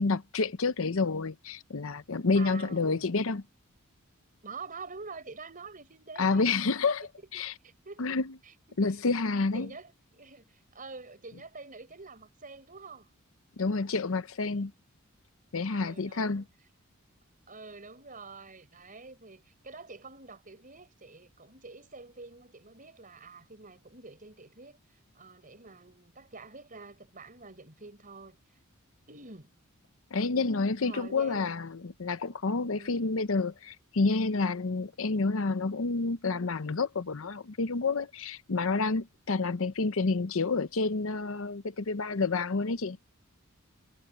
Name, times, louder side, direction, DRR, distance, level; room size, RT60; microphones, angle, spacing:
voice 1, 0.0-3.4 6.2-7.0 7.3-7.5 8.0-8.2 8.8-9.7 13.6-14.7 15.5-16.4 30.1-43.0, left 3 dB, 65° left, 0.7 m, -29 dB
voice 2, 2.4-3.1 4.4-6.5 7.3-8.2 8.4-8.8 9.2-9.3 9.5-13.1 15.7-16.4 17.5-24.8 25.1-28.4 29.1-29.5 30.8-31.7 32.7-33.1, right 4 dB, 40° right, 5.3 m, -47 dB
head